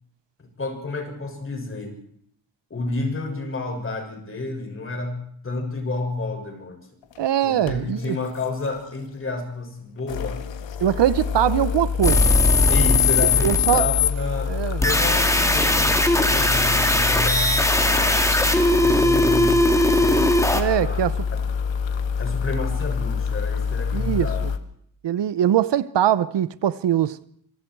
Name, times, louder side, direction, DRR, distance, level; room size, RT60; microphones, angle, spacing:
voice 1, 0.4-2.0 2.7-6.8 7.4-10.4 12.7-20.2 20.6-21.0 21.3-21.5 22.2-24.5, left 3 dB, 30° left, 6.8 m, -30 dB
sound 1, 7.0-7.2 7.7-9.2 10.0-24.6, left 6 dB, 75° left, 2.0 m, -27 dB
voice 2, 7.2-8.2 10.8-12.3 13.4-13.9 14.5-14.8 20.5-21.1 23.9-24.3 25.0-27.2, right 10 dB, 65° right, 1.0 m, -22 dB
sound 2, 12.0-14.1 14.8-20.6, left 2 dB, 5° left, 2.4 m, -19 dB
27.0 x 25.0 x 4.7 m
wide cardioid pair, 155°, 45 cm